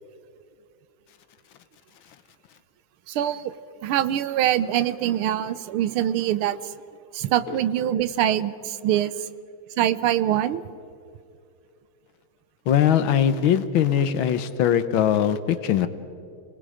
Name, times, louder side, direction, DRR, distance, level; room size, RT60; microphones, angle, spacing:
voice 1, 3.1-3.5 3.8-6.6 7.1-9.1 9.8-10.6, right 11 dB, 85° right, 14 dB, 1.6 m, -24 dB
voice 2, 12.7-15.9, left 9 dB, 70° left, 12 dB, 1.7 m, -21 dB
29.0 x 20.0 x 5.0 m, 2.5 s
omnidirectional pair, 2.3 m